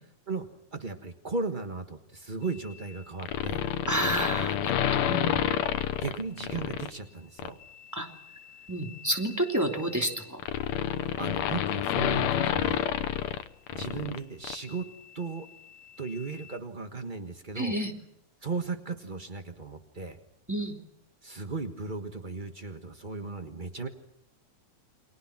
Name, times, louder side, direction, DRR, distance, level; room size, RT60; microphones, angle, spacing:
voice 1, 0.3-3.7 5.5-5.6 6.0-7.6 10.9-12.9 13.7-14.9 15.1-15.5 16.0-17.7 18.4-20.2 21.2-23.9, right 4 dB, 65° right, 7 dB, 0.4 m, -36 dB
sound 1, 3.2-6.9 7.4-7.6 8.8-14.2 14.4-14.5, left 10 dB, 65° left, 2.1 m, -29 dB
voice 2, 3.9-5.5 7.9-8.1 8.7-10.4 17.5-17.9 20.5-20.7, right 1 dB, 5° right, 4 dB, 2.5 m, -30 dB
29.5 x 23.5 x 6.0 m, 0.79 s
omnidirectional pair, 3.6 m